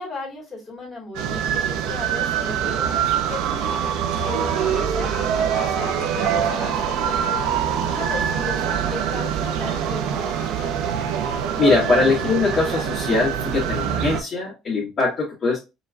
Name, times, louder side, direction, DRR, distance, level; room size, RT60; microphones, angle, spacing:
voice 1, 0.0-3.9 4.3-7.4 7.9-10.3, left 2 dB, 15° left, -3 dB, 2.6 m, -35 dB
sound 1, 1.2-1.5 1.8-7.3 7.7-8.0 8.3-8.8 9.1-9.2 9.6-9.8 10.2-10.7, left 8 dB, 50° left, 0.6 m, -40 dB
sound 2, 1.2-14.2, right 8 dB, 85° right, 0.7 m, -24 dB
sound 3, 3.5-4.2 6.3-11.4, equal, 30° right, 0.8 m, -37 dB
voice 2, 11.6-15.6, left 3 dB, 30° left, -7 dB, 1.9 m, -21 dB
5.0 x 3.2 x 2.5 m, 0.26 s
cardioid pair, 135°, 0 cm